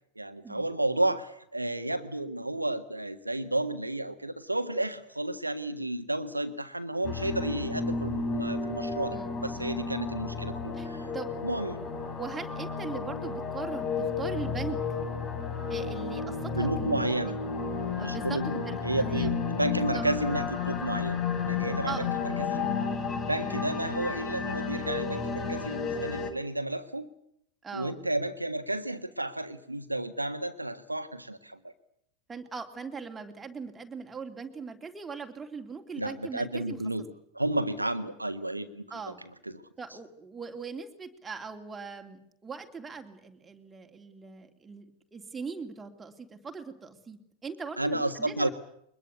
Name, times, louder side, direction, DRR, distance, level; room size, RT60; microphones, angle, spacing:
voice 1, 0.2-9.2 9.4-11.1 11.4-11.8 16.4-17.3 18.0-21.2 21.5-22.0 22.4-22.6 23.3-27.1 27.7-31.7 36.0-37.0 37.3-38.8 47.8-48.5, right 1 dB, 85° right, 10 dB, 1.5 m, -32 dB
sound 1, 7.0-26.3, left 5 dB, 30° left, 4.1 m, -32 dB
voice 2, 9.1-9.8 10.7-10.9 11.1-14.8 15.7-17.4 18.0-19.3 19.7-20.1 20.3-20.5 21.9-22.2 22.9-23.1 27.6-28.0 32.3-36.8 38.9-39.2 39.8-48.5, right 5 dB, 15° right, 4 dB, 3.0 m, -41 dB
23.5 x 21.5 x 8.3 m, 0.74 s
figure-of-eight pair, 90°, 0 cm